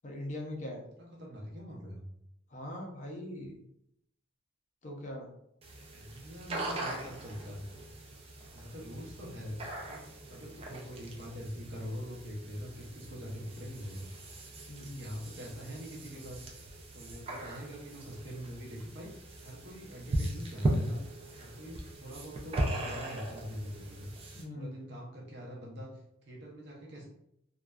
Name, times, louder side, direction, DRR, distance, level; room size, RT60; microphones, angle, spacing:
voice 1, 0.0-0.9 2.5-3.6 4.8-5.3 14.7-15.0 24.3-25.0, left 1 dB, 40° left, 1 dB, 0.4 m, -41 dB
voice 2, 1.0-2.0 5.9-7.6 8.5-9.6 9.8-14.1 14.8-16.4 16.9-21.0 21.4-24.1 24.5-27.1, equal, 55° right, -2 dB, 0.7 m, -44 dB
sound 1, 5.6-24.4, right 1 dB, 30° right, 0.3 m, -39 dB
2.5 x 2.2 x 2.2 m, 0.76 s
head